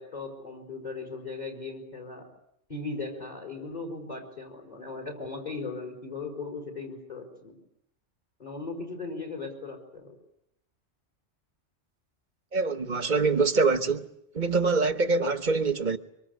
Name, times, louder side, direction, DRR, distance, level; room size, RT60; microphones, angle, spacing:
voice 1, 0.0-2.3 2.7-7.6 8.4-10.2, left 3 dB, 35° left, 5.0 m, -38 dB
voice 2, 12.5-14.1 14.3-16.0, right 4 dB, 40° right, 1.3 m, -24 dB
24.5 x 24.0 x 8.2 m
omnidirectional pair, 1.2 m